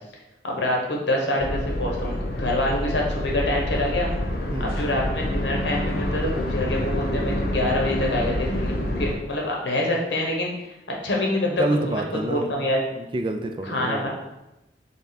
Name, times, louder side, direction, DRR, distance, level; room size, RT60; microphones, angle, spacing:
voice 1, 0.4-4.1 4.6-10.5 10.9-11.5 11.9-12.8 13.6-14.1, left 1 dB, 85° left, -1 dB, 1.1 m, -26 dB
sound 1, 1.4-9.1, left 1 dB, 60° left, 0.7 m, -27 dB
voice 2, 4.5-4.8 11.4-12.5 12.9-14.1, right 2 dB, 30° right, 6 dB, 0.3 m, -28 dB
3.7 x 3.4 x 4.0 m, 0.95 s
head